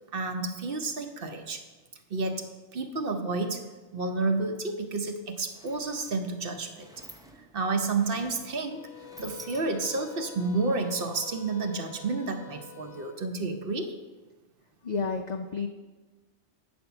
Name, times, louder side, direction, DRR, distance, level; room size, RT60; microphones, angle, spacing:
voice 1, 0.1-1.6 2.1-3.6 3.9-6.9 7.5-8.9 9.2-13.9, right 3 dB, 55° right, 5 dB, 0.9 m, -30 dB
Sliding door, 4.8-4.9 5.2-10.1, right 1 dB, 5° right, 0.4 m, -52 dB
sound 1, 8.6-13.2, left 11 dB, 80° left, 0.9 m, -48 dB
voice 2, 14.8-15.7, left 4 dB, 60° left, 5 dB, 0.4 m, -30 dB
9.0 x 4.3 x 6.9 m, 1.3 s
omnidirectional pair, 1.3 m